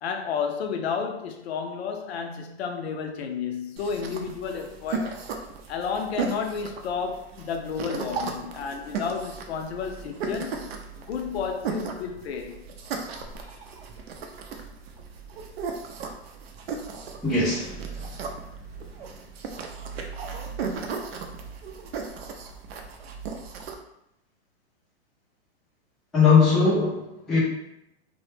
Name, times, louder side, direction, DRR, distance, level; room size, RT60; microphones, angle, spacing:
voice 1, 0.0-5.2 5.7-10.7 11.1-12.6, left 6 dB, 75° left, 4 dB, 0.5 m, -31 dB
sound 1, 3.8-23.7, right 5 dB, 65° right, 0.5 m, -36 dB
voice 2, 17.2-18.1 26.1-27.4, left 5 dB, ahead, -12 dB, 0.3 m, -21 dB
2.1 x 2.0 x 3.1 m, 0.80 s
hypercardioid pair, 150°, 33 cm